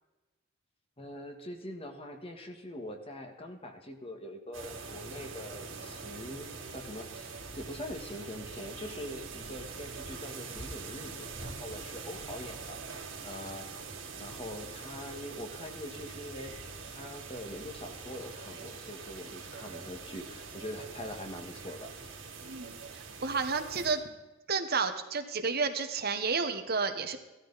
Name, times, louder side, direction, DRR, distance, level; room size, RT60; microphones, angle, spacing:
voice 1, 1.0-6.5 6.7-12.8 13.2-13.7 14.2-16.5 16.9-21.9, left 1 dB, 30° left, 4 dB, 1.7 m, -43 dB
sound 1, 4.5-23.9, right 4 dB, 80° right, 2.9 m, -44 dB
voice 2, 22.4-24.0 24.5-27.2, right 4 dB, 50° right, 7 dB, 1.2 m, -31 dB
16.5 x 13.0 x 4.1 m, 1.1 s
head